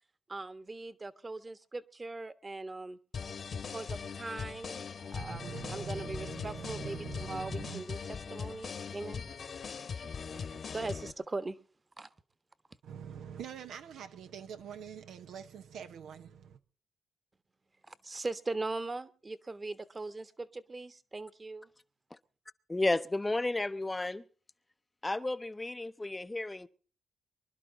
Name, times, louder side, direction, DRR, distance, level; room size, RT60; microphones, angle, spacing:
voice 1, 0.3-3.0 3.7-7.0 7.3-9.2 10.3-10.4 10.7-11.6 12.0-12.1 17.8-21.7, right 3 dB, 30° right, 1.3 m, -40 dB
sound 1, 3.1-11.1, left 6 dB, 55° left, 1.5 m, -40 dB
voice 2, 5.1-7.9 12.8-16.6, right 8 dB, 80° right, 1.0 m, -44 dB
voice 3, 22.7-24.2 25.0-26.7, left 2 dB, 20° left, 0.8 m, -32 dB
25.0 x 11.5 x 4.0 m
cardioid pair, 65°, 0 cm